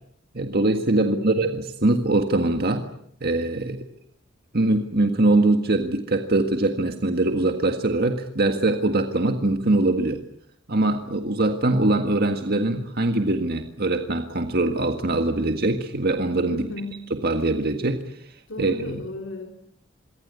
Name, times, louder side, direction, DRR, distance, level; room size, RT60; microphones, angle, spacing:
voice 1, 0.3-2.9 3.2-3.8 4.5-10.2 10.7-16.7 17.2-19.0, right 2 dB, 50° right, 5 dB, 1.8 m, -22 dB
voice 2, 0.9-1.4 16.5-17.0 18.5-19.5, left 2 dB, 75° left, 2 dB, 3.5 m, -34 dB
26.5 x 23.5 x 8.3 m, 0.70 s
head